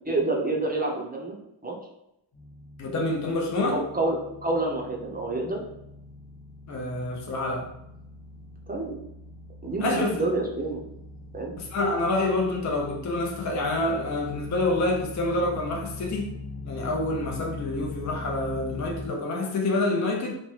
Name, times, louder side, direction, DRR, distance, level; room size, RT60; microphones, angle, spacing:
voice 1, 0.1-1.4 1.6-1.7 3.7-5.6 8.7-9.0 9.6-10.8 11.3-11.5, right 2 dB, 20° right, 0 dB, 0.6 m, -28 dB
sound 1, 2.3-19.1, left 2 dB, 60° left, 1.0 m, -41 dB
voice 2, 2.8-3.8 6.7-7.7 9.8-10.2 11.6-16.4 16.7-20.3, left 2 dB, 40° left, -1 dB, 0.5 m, -27 dB
3.0 x 2.2 x 3.1 m, 0.82 s
wide cardioid pair, 80°, 47 cm